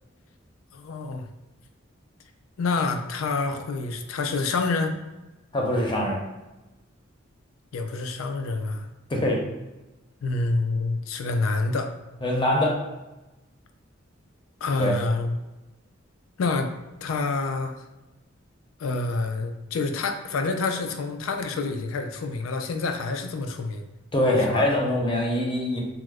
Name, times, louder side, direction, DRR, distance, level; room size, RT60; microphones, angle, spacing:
voice 1, 0.7-1.3 2.6-5.0 7.7-8.9 10.2-11.9 14.6-15.4 16.4-16.8 17.0-17.8 18.8-23.8 24.5-24.7, left 3 dB, 85° left, 6 dB, 0.4 m, -27 dB
voice 2, 5.5-6.2 9.1-9.4 12.2-12.7 14.8-14.9 24.1-25.8, left 1 dB, 25° left, -1 dB, 0.6 m, -23 dB
3.0 x 2.0 x 3.5 m, 1.1 s
head